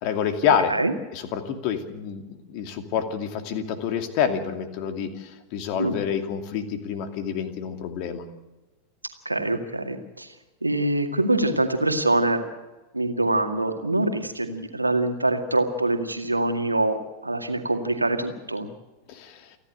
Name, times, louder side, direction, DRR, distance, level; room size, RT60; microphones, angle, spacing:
voice 1, 0.0-0.7 1.1-8.3 19.1-19.4, left 7 dB, 45° left, 8 dB, 2.5 m, -27 dB
voice 2, 9.3-10.3 10.6-12.4 12.9-18.7, right 2 dB, 85° right, 6 dB, 2.0 m, -24 dB
29.0 x 11.0 x 8.2 m, 1.1 s
figure-of-eight pair, 90°, 0 cm